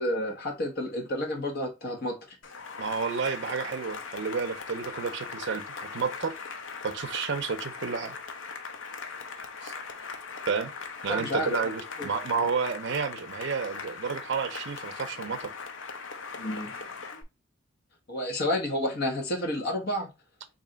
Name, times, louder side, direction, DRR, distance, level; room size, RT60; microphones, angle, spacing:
voice 1, 0.0-2.4 11.1-11.6 12.0-12.1 12.4-12.5 16.4-16.7 18.1-20.1, left 1 dB, 50° left, 1.1 m, -30 dB
Cheering / Applause, 2.4-17.2, left 5 dB, 65° left, 0.6 m, -40 dB
voice 2, 2.8-6.3 6.8-8.1 9.6-9.7 10.5-10.7 11.0-15.5, right 5 dB, 60° right, 0.5 m, -31 dB
3.2 x 2.7 x 3.8 m
head